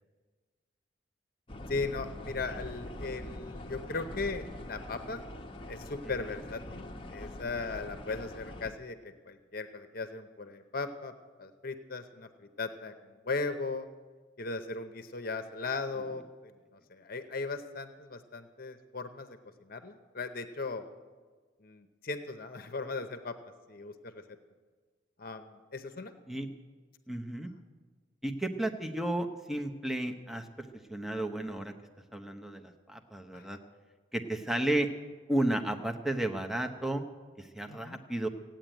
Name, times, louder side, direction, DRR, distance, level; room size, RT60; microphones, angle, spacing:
sound 1, 1.5-8.7, left 1 dB, 30° left, 0.9 m, -43 dB
voice 1, 1.7-5.2 5.7-11.1 11.4-13.9 14.4-20.9 21.6-23.4 23.7-24.2 25.2-26.1 27.5-27.6 33.3-33.6 37.7-38.0, left 3 dB, 50° left, 9 dB, 0.8 m, -38 dB
voice 2, 27.1-27.5 28.2-31.7 32.1-33.6 34.1-34.9 35.3-37.0 37.4-38.3, right 1 dB, ahead, 4 dB, 0.9 m, -33 dB
16.0 x 9.1 x 9.0 m, 1.4 s
head